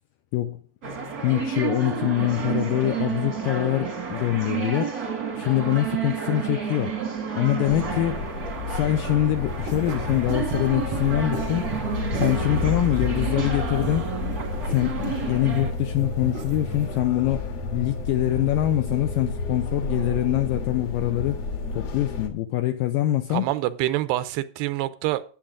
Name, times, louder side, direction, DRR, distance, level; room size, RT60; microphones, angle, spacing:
sound 1, 0.8-15.7, right 6 dB, 50° right, 1.1 m, -31 dB
voice 1, 1.2-4.9 5.4-7.0 7.4-8.2 8.7-11.7 12.2-14.1 14.7-17.5 17.7-21.4 21.8-23.5, left 14 dB, 85° left, 2.0 m, -24 dB
sound 2, 7.6-22.3, left 3 dB, 55° left, 2.0 m, -30 dB
sound 3, 9.4-17.0, right 5 dB, 70° right, 1.4 m, -37 dB
voice 2, 23.3-25.2, right 15 dB, 85° right, 2.8 m, -26 dB
13.0 x 9.0 x 3.7 m
omnidirectional pair, 4.7 m